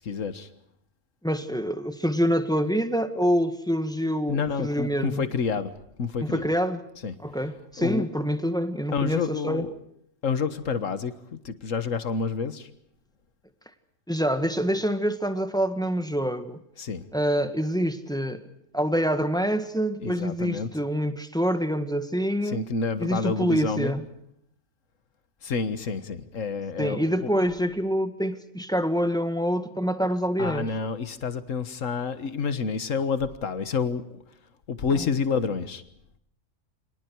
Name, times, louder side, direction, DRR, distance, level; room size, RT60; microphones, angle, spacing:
voice 1, 0.0-0.5 4.3-5.7 6.0-6.4 7.0-7.1 7.8-8.1 8.9-9.7 10.2-12.7 16.8-17.0 20.0-20.7 22.4-23.9 25.4-27.0 30.4-34.2 34.7-35.8, left 5 dB, 80° left, 12 dB, 1.8 m, -28 dB
voice 2, 1.2-5.2 6.2-6.8 7.2-9.7 14.1-16.6 17.1-18.4 18.7-22.6 23.0-24.0 26.8-30.7, equal, 5° left, 9 dB, 1.6 m, -26 dB
29.5 x 25.0 x 4.7 m, 0.71 s
omnidirectional pair, 1.3 m